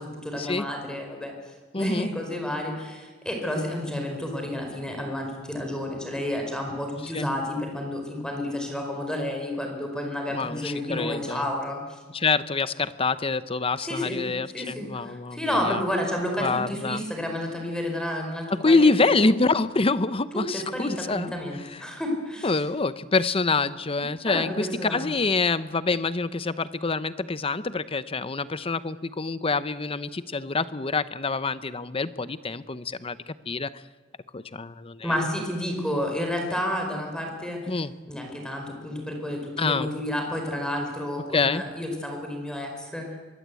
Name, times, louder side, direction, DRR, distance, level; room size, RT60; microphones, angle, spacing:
voice 1, 0.0-1.3 1.7-11.8 13.8-14.2 14.5-18.9 20.3-22.5 24.0-25.1 35.0-37.7 38.1-43.2, left 1 dB, 5° left, 2 dB, 4.5 m, -30 dB
voice 2, 1.7-2.1 7.0-7.3 10.3-11.5 12.1-15.8 16.4-17.0 18.5-21.3 21.7-21.8 22.4-33.8 34.3-35.1 37.7-37.9 39.6-39.9 41.3-41.6, left 3 dB, 30° left, 14 dB, 0.8 m, -26 dB
24.5 x 22.0 x 8.4 m, 1.3 s
head